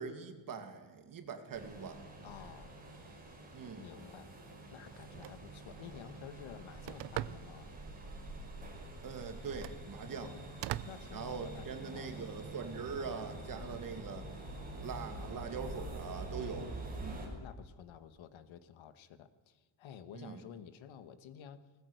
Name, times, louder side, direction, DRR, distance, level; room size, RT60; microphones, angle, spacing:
voice 1, 0.0-2.0 3.5-3.8 9.0-10.3 11.1-14.3 14.8-16.7 17.0-17.3 20.1-20.4, right 6 dB, 40° right, 7 dB, 2.3 m, -42 dB
sound 1, 1.5-17.3, right 1 dB, 15° right, 5.4 m, -47 dB
voice 2, 2.2-2.8 3.8-4.3 4.7-7.7 10.2-10.5 10.9-12.3 16.2-16.9 17.3-21.6, left 8 dB, 65° left, 12 dB, 1.5 m, -52 dB
Telephone, 4.9-11.9, right 14 dB, 55° right, 0.7 m, -46 dB
20.0 x 19.5 x 8.0 m, 1.2 s
cardioid pair, 165°, 49 cm